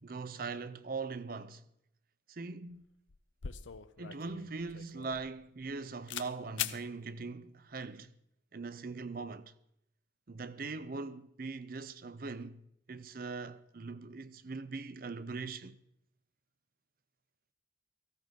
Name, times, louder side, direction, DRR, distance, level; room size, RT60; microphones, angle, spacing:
voice 1, 0.0-1.6 2.3-2.8 4.0-8.1 8.5-9.5 10.3-12.6 12.9-15.8, right 4 dB, 50° right, 0.6 m, -41 dB
sound 1, 2.7-2.8 3.1-5.8 6.1-6.3 6.6-6.8, left 10 dB, 80° left, 0.7 m, -41 dB
18.0 x 15.0 x 3.7 m
head